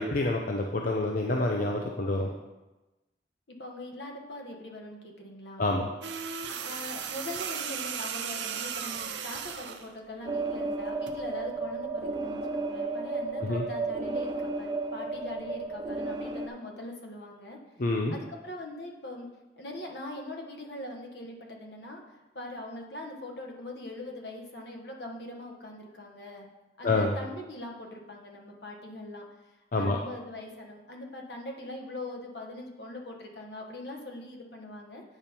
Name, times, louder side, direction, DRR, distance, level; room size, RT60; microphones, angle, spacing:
voice 1, 0.0-2.3 5.6-5.9 13.4-13.6 17.8-18.2 26.8-27.1 29.7-30.0, left 2 dB, 50° left, 1 dB, 0.6 m, -27 dB
voice 2, 3.5-5.7 6.6-17.6 18.1-19.3 19.6-26.5 26.8-29.3 29.7-35.0, left 1 dB, 70° left, 1 dB, 1.4 m, -42 dB
sound 1, 6.0-9.9 11.1-11.3, right 7 dB, 85° right, 0.6 m, -36 dB
sound 2, 10.3-16.5, right 3 dB, 25° right, 0.6 m, -33 dB
8.8 x 5.3 x 4.4 m, 1.1 s
head